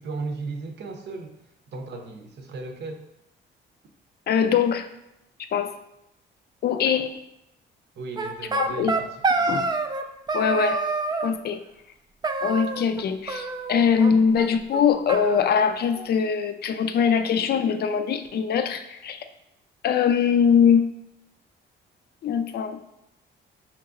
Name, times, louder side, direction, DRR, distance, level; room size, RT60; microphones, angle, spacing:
voice 1, 0.0-1.3 1.7-3.1 8.0-9.6 10.4-10.7, right 3 dB, 60° right, 5 dB, 0.6 m, -36 dB
voice 2, 4.3-4.9 5.5-5.7 6.6-7.1 8.5-9.0 9.5-9.7 10.3-10.8 11.2-11.6 12.4-19.2 19.8-20.9 22.2-22.8, left 7 dB, 55° left, 9 dB, 0.4 m, -22 dB
sound 1, 8.2-10.0 10.3-11.3 12.2-13.0 13.3-14.1 14.4-14.5 14.7-14.8 15.1-16.1, right 3 dB, 20° right, 0.3 m, -27 dB
5.7 x 3.0 x 2.5 m, 0.86 s
cardioid pair, 90°, 20 cm